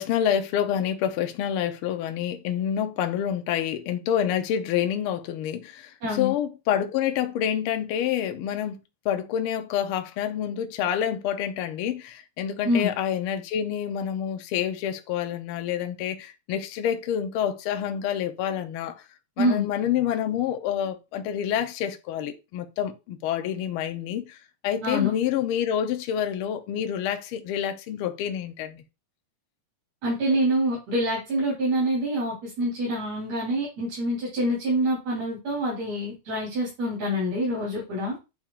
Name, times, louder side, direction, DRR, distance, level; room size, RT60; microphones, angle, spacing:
voice 1, 0.0-8.8 9.0-19.0 19.4-24.4 24.6-28.8, left 9 dB, 90° left, 1.2 m, -28 dB
voice 2, 6.0-6.3 12.6-12.9 19.4-19.6 24.8-25.1 30.0-38.2, equal, 60° right, 4.5 m, -26 dB
8.8 x 4.5 x 2.4 m
omnidirectional pair, 3.3 m